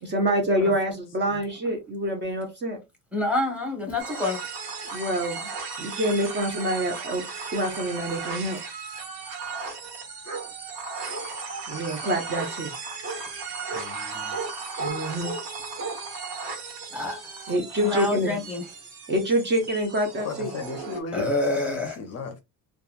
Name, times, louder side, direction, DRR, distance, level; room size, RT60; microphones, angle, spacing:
voice 1, 0.0-2.8 4.9-5.5 5.8-7.2 7.5-8.6 11.7-12.7 14.8-15.3 17.5-18.3 19.1-20.5, equal, 30° right, 0.6 m, -26 dB
voice 2, 3.1-4.4 16.9-17.5 17.8-18.6 21.1-22.0, left 2 dB, 5° right, 1.0 m, -27 dB
sound 1, 4.0-21.0, right 4 dB, 75° right, 1.2 m, -36 dB
Bark, 10.3-10.5 11.1-11.7 12.3-12.5 13.0-13.2 13.7-13.9 14.3-14.5 14.8-15.4 15.8-16.0, right 3 dB, 45° right, 1.2 m, -34 dB
voice 3, 13.7-14.4 20.2-21.3 21.8-22.4, left 4 dB, 40° left, 0.5 m, -36 dB
2.8 x 2.3 x 2.4 m
cardioid pair, 140°, 39 cm